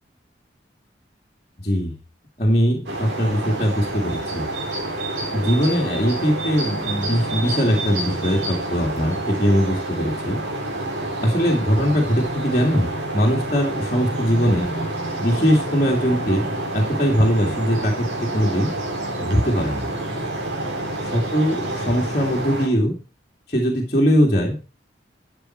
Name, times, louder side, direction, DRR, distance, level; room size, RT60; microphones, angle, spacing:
voice 1, 2.4-4.5 5.3-10.4 11.2-12.9 13.1-14.7 15.2-18.1 18.3-18.7 19.2-19.9 21.1-22.9 23.5-24.6, equal, 40° left, -2 dB, 2.5 m, -21 dB
sound 1, 2.9-22.7, right 1 dB, 85° right, 3.8 m, -28 dB
12.5 x 8.0 x 4.6 m, 0.33 s
head